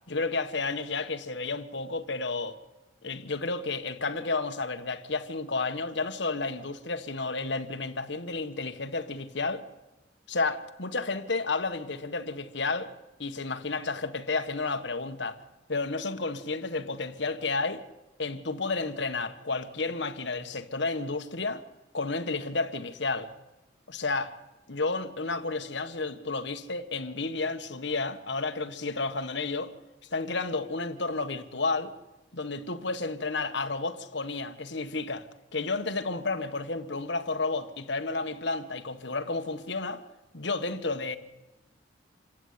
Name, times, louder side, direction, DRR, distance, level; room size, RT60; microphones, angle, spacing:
voice 1, 0.1-2.6 3.0-9.6 10.3-12.9 13.2-15.4 15.7-17.8 18.2-21.6 21.9-23.3 23.9-24.3 24.7-29.7 30.1-31.9 32.3-35.3 35.5-40.0 40.3-41.2, left 3 dB, 65° left, 1.5 m, -31 dB
27.5 x 15.5 x 9.7 m
head